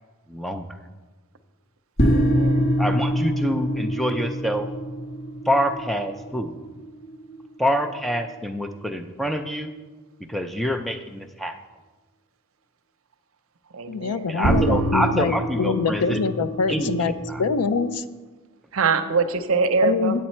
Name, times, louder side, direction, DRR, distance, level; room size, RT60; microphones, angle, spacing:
voice 1, 0.3-0.6 2.8-4.7 5.5-6.5 7.6-9.7 10.3-11.6 14.3-16.2 16.7-17.4, equal, ahead, 6 dB, 0.4 m, -26 dB
sound 1, 2.0-8.7 14.4-17.9, right 1 dB, 45° left, 1.1 m, -25 dB
voice 2, 2.1-2.7 13.7-14.4 18.7-20.2, right 4 dB, 70° right, 9 dB, 0.6 m, -23 dB
voice 3, 13.9-17.1 17.4-18.0 19.8-20.3, left 5 dB, 90° left, 14 dB, 0.4 m, -24 dB
8.6 x 8.1 x 4.3 m, 1.3 s
head